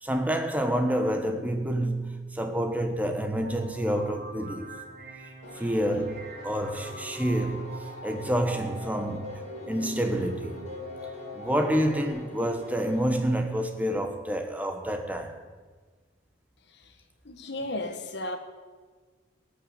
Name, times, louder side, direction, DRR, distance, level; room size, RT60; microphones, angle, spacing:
voice 1, 0.0-4.8 5.6-9.4 9.7-10.7 11.3-15.4, equal, 5° right, 1.2 m, -28 dB
sound 1, 3.4-12.1, equal, 45° right, 1.9 m, -43 dB
Piano, 5.4-13.0, equal, 35° left, 3.4 m, -46 dB
voice 2, 17.2-18.4, left 1 dB, 55° left, 1.4 m, -34 dB
16.5 x 6.4 x 9.5 m
head